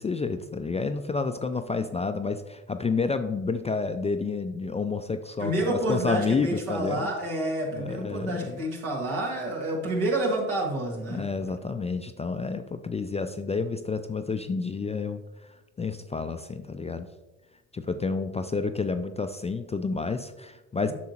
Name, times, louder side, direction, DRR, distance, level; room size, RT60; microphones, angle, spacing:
voice 1, 0.0-7.1 7.7-8.6 11.1-15.2 15.8-17.1 17.7-20.9, left 4 dB, 15° left, 8 dB, 0.3 m, -30 dB
voice 2, 5.4-11.3, right 1 dB, 80° right, -2 dB, 1.8 m, -29 dB
8.3 x 6.1 x 2.9 m, 1.1 s
hypercardioid pair, 50°, 42 cm